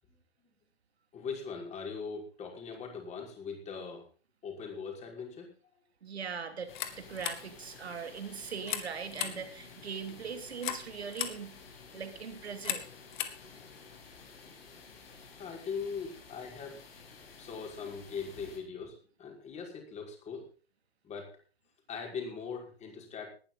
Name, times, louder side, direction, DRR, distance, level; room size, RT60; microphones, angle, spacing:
voice 1, 1.1-4.1 4.4-5.5 9.1-9.4 10.1-10.2 15.4-16.9 17.4-20.5 21.0-21.3 21.9-23.3, left 5 dB, 20° left, 1 dB, 5.6 m, -41 dB
voice 2, 6.0-11.6 11.9-12.8, right 6 dB, 75° right, 8 dB, 2.9 m, -40 dB
sound 1, 6.6-14.0, left 11 dB, 45° left, 2.2 m, -41 dB
sound 2, 6.7-18.6, left 5 dB, 65° left, 6.7 m, -53 dB
19.5 x 12.0 x 4.0 m, 0.37 s
hypercardioid pair, 120°, 32 cm